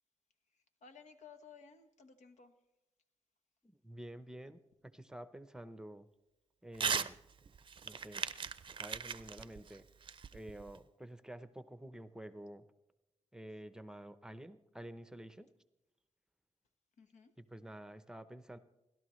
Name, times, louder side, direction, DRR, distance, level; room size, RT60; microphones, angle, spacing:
voice 1, 0.8-2.5 17.0-17.3, left 5 dB, 80° left, 7 dB, 1.3 m, -57 dB
voice 2, 3.6-6.1 6.6-7.2 7.9-8.3 8.8-9.9 10.3-12.6 13.3-15.5 17.4-18.6, right 1 dB, 5° right, 11 dB, 0.7 m, -50 dB
Crumpling crinkling / Tearing, 6.7-7.1 7.5-10.8, right 6 dB, 40° right, 0.5 m, -38 dB
29.0 x 12.5 x 3.2 m, 0.98 s
cardioid pair, 90°, 12 cm